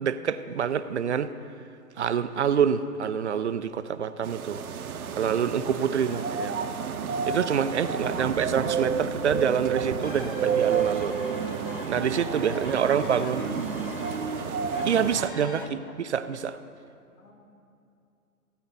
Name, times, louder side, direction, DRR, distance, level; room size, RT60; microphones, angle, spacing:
voice 1, 0.0-1.3 2.0-4.6 5.2-6.5 7.3-11.2 11.9-13.4 14.8-16.6, right 7 dB, 50° right, 12 dB, 0.4 m, -26 dB
sound 1, 4.2-15.3, right 6 dB, 65° right, 0.9 m, -30 dB
voice 2, 5.8-6.4 7.9-8.4 12.6-13.7 15.3-16.1 17.2-17.3, left 2 dB, 80° left, 1 dB, 2.4 m, -47 dB
sound 2, 10.0-15.7, left 3 dB, 40° left, 0.4 m, -41 dB
15.5 x 9.1 x 4.0 m, 2.6 s
hypercardioid pair, 155°, 46 cm